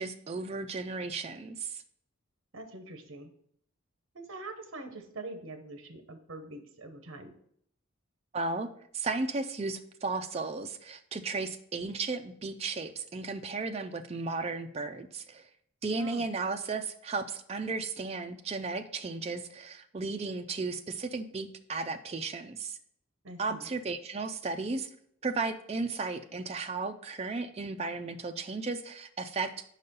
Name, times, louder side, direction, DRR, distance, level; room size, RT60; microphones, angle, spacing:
voice 1, 0.0-1.8 8.3-15.5 15.8-22.8 23.4-24.9 25.2-29.6, right 3 dB, 30° right, 7 dB, 0.4 m, -35 dB
voice 2, 2.5-3.3 4.1-7.3 16.0-16.3 23.2-23.7, right 2 dB, 65° right, 6 dB, 0.9 m, -44 dB
5.4 x 4.0 x 5.4 m, 0.67 s
head